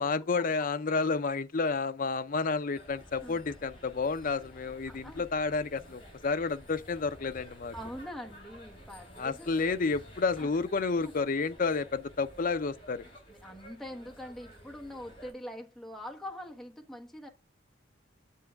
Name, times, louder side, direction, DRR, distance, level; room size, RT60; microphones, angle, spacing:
voice 1, 0.0-7.7 9.2-13.0, left 4 dB, 45° left, 0.5 m, -30 dB
Covent Garden - Taxi Bike Bells, 2.7-15.3, equal, 30° left, 4.2 m, -52 dB
voice 2, 4.9-5.3 7.7-9.6 10.4-10.5 11.0-11.1 13.3-17.3, equal, ahead, 1.1 m, -43 dB
7.9 x 7.3 x 3.4 m
head